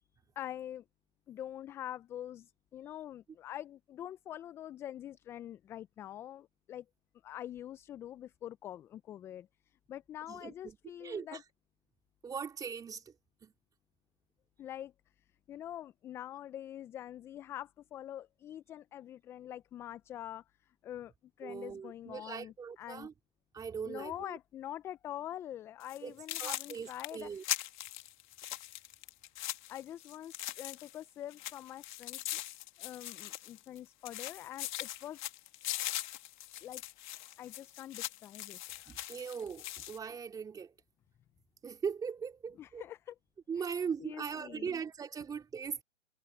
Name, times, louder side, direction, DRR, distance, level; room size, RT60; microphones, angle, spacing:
voice 1, 0.4-0.8 1.3-6.8 7.2-11.4 14.6-14.9 15.5-20.4 20.8-21.1 21.4-23.1 23.9-27.6 29.7-32.4 32.8-35.2 36.6-36.8 37.4-38.9 42.6-43.2 43.6-44.8, left 11 dB, 5° left, 0.6 m, -45 dB
voice 2, 10.3-11.4 12.2-13.0 13.4-13.5 21.4-23.1 23.5-24.4 26.0-26.1 26.4-27.4 38.9-40.7 41.6-42.8 43.5-45.8, right 6 dB, 10° right, 2.7 m, -40 dB
sound 1, 25.8-26.0 26.3-31.0 31.3-33.8 34.1-40.0, left 15 dB, 35° left, 2.3 m, -41 dB
figure-of-eight pair, 130°, 39 cm